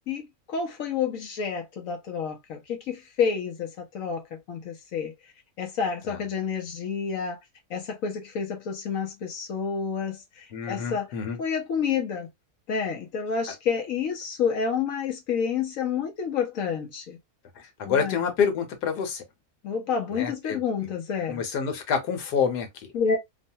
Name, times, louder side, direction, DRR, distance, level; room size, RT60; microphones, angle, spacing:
voice 1, 0.5-5.1 5.6-7.4 7.7-11.1 11.4-12.3 12.7-17.2 17.9-18.2 19.6-21.4 22.9-23.2, left 6 dB, 65° left, 1.0 m, -29 dB
voice 2, 10.5-11.4 17.5-19.2 20.1-20.9 21.3-22.9, left 6 dB, 90° left, 1.4 m, -28 dB
3.1 x 2.1 x 2.7 m
omnidirectional pair, 1.7 m